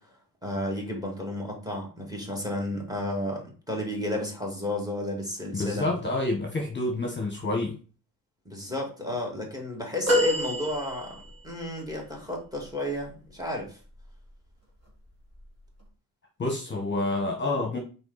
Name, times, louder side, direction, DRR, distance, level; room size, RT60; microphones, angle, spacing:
voice 1, 0.4-5.9 8.5-13.8, left 1 dB, 10° right, 0 dB, 2.2 m, -32 dB
voice 2, 5.5-7.8 16.4-17.8, left 2 dB, 30° left, 1 dB, 1.2 m, -28 dB
sound 1, 10.1-11.5 13.9-14.1 15.4-15.5, equal, 40° right, 2.8 m, -27 dB
5.9 x 4.5 x 4.0 m, 0.37 s
wide cardioid pair, 120°, 39 cm